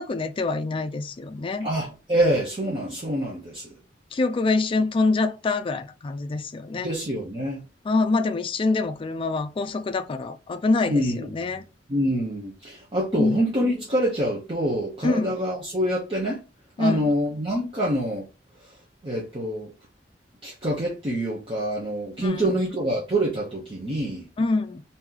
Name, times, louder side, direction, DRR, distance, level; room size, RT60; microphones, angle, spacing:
voice 1, 0.0-1.7 4.1-6.9 7.8-11.6 13.2-13.4 15.0-15.4 16.8-17.1 22.2-22.5 24.4-24.8, left 3 dB, 30° left, 0.3 m, -25 dB
voice 2, 1.6-3.8 6.8-7.6 10.9-11.3 11.9-16.4 16.8-18.3 18.6-18.8 19.0-19.7 20.4-24.3, right 1 dB, 30° right, 0.8 m, -26 dB
3.0 x 2.7 x 3.7 m
head